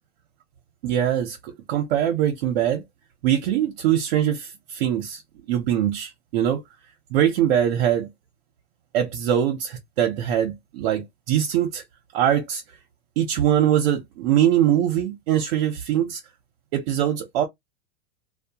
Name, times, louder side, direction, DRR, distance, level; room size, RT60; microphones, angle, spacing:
voice 1, 0.8-2.8 3.2-5.2 5.5-6.6 7.1-8.1 8.9-11.8 12.1-12.6 13.2-16.2 16.7-17.4, right 10 dB, 60° right, 0.7 m, -22 dB
2.5 x 2.1 x 2.8 m
supercardioid pair, 160°, 33 cm